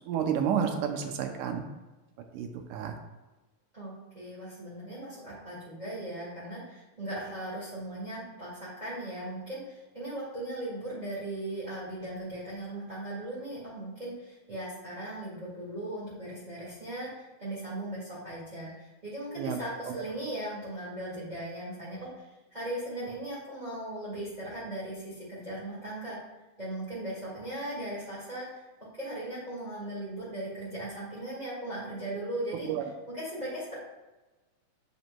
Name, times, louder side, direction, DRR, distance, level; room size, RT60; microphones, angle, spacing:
voice 1, 0.1-1.7 2.3-2.9 19.4-19.6 32.6-32.8, right 8 dB, 80° right, 5 dB, 2.0 m, -30 dB
voice 2, 3.7-26.2 26.6-28.6 29.0-33.8, right 1 dB, 25° right, -10 dB, 0.9 m, -38 dB
8.1 x 7.3 x 2.2 m, 1.1 s
omnidirectional pair, 3.9 m